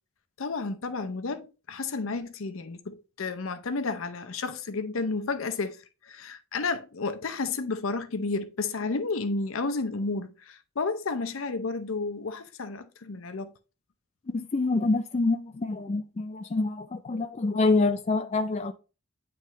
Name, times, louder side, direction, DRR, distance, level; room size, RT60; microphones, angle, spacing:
voice 1, 0.4-13.5, left 3 dB, 70° left, 0.7 m, -32 dB
voice 2, 14.3-18.7, left 3 dB, 30° left, 0.4 m, -26 dB
9.1 x 3.4 x 3.1 m
head